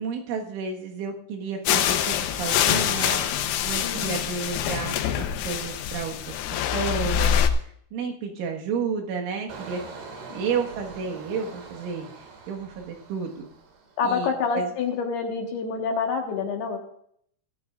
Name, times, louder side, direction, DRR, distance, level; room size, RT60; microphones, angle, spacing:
voice 1, 0.0-6.4 6.7-7.4 7.9-9.8 10.3-12.1 12.5-13.5 14.0-14.7, right 5 dB, 75° right, 1 dB, 4.0 m, -31 dB
sound 1, 1.7-7.5, left 10 dB, 90° left, 2.3 m, -25 dB
voice 2, 3.8-4.3 10.3-10.4 14.0-16.8, left 5 dB, 65° left, 2 dB, 3.0 m, -27 dB
Engine, 9.5-14.2 14.5-14.9, right 4 dB, 60° right, 3.8 m, -43 dB
19.5 x 13.5 x 2.5 m, 0.65 s
omnidirectional pair, 5.7 m